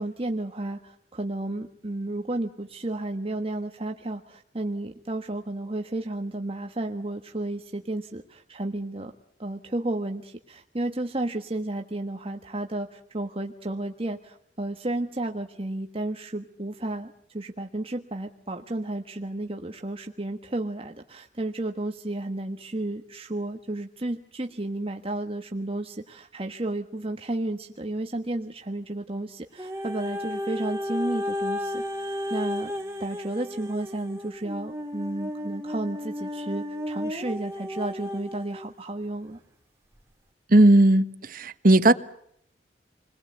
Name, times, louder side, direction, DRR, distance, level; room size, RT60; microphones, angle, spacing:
voice 1, 0.0-9.1 9.4-32.7 33.0-39.4, right 2 dB, 35° right, 1.4 m, -32 dB
sound 1, 29.6-38.7 39.3-39.4, left 1 dB, 15° right, 2.7 m, -33 dB
voice 2, 40.5-41.9, right 1 dB, 50° right, 1.4 m, -17 dB
28.5 x 21.0 x 8.0 m
head